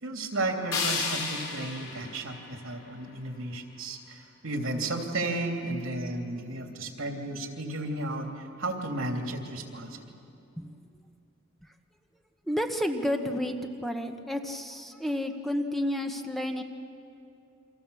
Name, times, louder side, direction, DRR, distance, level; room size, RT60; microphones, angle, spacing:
voice 1, 0.0-10.1, right 2 dB, 75° right, 2 dB, 3.1 m, -33 dB
sound 1, 0.7-3.7, left 5 dB, 85° left, 5.6 m, -34 dB
voice 2, 12.5-16.6, left 1 dB, ahead, 4 dB, 1.1 m, -31 dB
29.5 x 25.0 x 7.1 m, 2.8 s
head